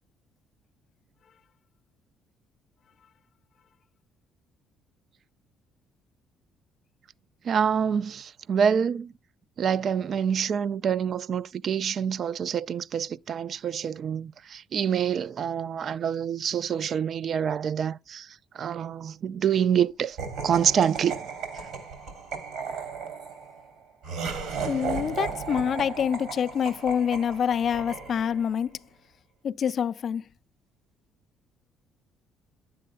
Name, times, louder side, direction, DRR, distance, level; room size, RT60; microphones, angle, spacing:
voice 1, 7.4-9.1 9.6-20.2 20.4-21.3, right 8 dB, 50° right, 0.4 m, -26 dB
Laughter, 20.2-28.5, right 5 dB, 80° right, 3.3 m, -35 dB
voice 2, 24.6-28.8 29.4-30.3, left 8 dB, 50° left, 0.3 m, -26 dB
10.0 x 7.7 x 2.3 m
cardioid pair, 110°, 0 cm